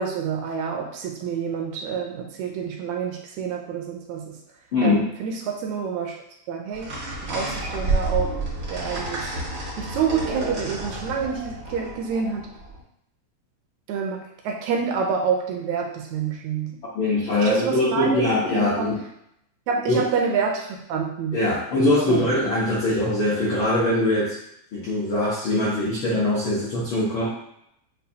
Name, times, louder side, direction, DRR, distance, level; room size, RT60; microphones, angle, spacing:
voice 1, 0.0-4.4 4.8-6.2 6.5-6.9 7.3-8.3 8.7-9.2 9.8-12.5 13.9-16.8 17.4-18.9 19.7-21.4 22.1-22.2, right 6 dB, 80° right, 1 dB, 1.8 m, -27 dB
sound 1, 6.7-12.8, right 2 dB, 60° right, 0.7 m, -30 dB
voice 2, 16.9-19.0 19.9-20.0 21.3-24.3 24.7-27.2, left 1 dB, 70° left, -8 dB, 1.2 m, -22 dB
6.7 x 2.3 x 2.7 m, 0.75 s
omnidirectional pair, 3.4 m